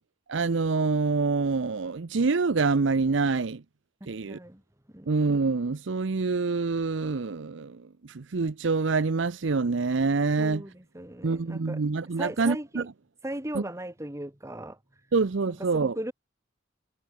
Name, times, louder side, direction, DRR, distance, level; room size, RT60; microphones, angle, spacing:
voice 1, 0.3-3.6 4.1-4.4 5.1-10.6 11.2-12.8 13.5-13.6 15.1-16.0, right 4 dB, 85° right, 0.7 m, -26 dB
voice 2, 4.1-4.6 4.9-5.0 10.4-11.8 12.1-12.9 13.2-14.8 15.7-16.1, right 1 dB, 15° right, 1.7 m, -37 dB
head